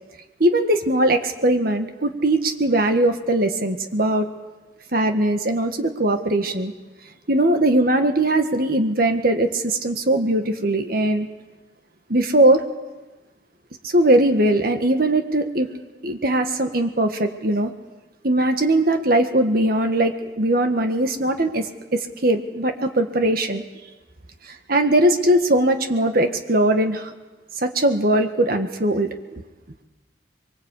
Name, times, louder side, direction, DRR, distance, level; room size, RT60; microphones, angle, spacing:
voice 1, 0.4-4.3 4.9-6.7 7.3-11.3 12.1-12.7 13.8-15.7 16.0-17.7 18.2-23.6 24.4-27.1 27.5-29.1, right 1 dB, 55° right, 6 dB, 1.8 m, -20 dB
24.0 x 23.5 x 8.4 m, 1.1 s
head